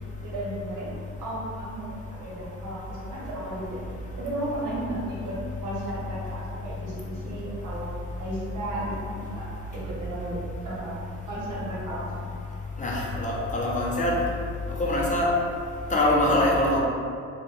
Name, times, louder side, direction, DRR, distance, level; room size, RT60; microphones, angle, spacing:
voice 1, 0.2-0.9 1.2-3.8 4.2-5.3 5.6-7.8 8.2-9.5 9.7-11.0 11.3-12.3, right 1 dB, 80° right, -7 dB, 1.0 m, -34 dB
voice 2, 12.8-14.2 14.8-15.3 15.9-16.8, left 1 dB, 25° left, -4 dB, 0.5 m, -23 dB
3.1 x 2.3 x 2.4 m, 2.3 s
cardioid pair, 90°, 30 cm